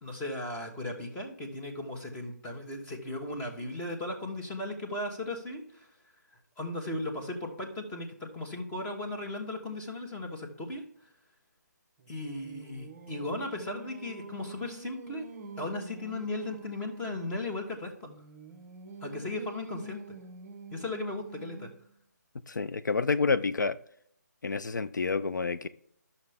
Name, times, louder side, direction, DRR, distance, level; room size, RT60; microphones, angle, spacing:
voice 1, 0.0-5.9 6.6-10.8 12.1-15.2 15.6-18.1 19.0-20.0 20.7-21.7, left 2 dB, 10° left, 1.4 m, -36 dB
Singing, 12.0-17.4 18.0-21.9, right 3 dB, 15° right, 1.0 m, -46 dB
voice 2, 22.5-23.8 24.4-25.7, left 4 dB, 85° left, 0.5 m, -28 dB
11.0 x 6.8 x 3.5 m
figure-of-eight pair, 155°, 10 cm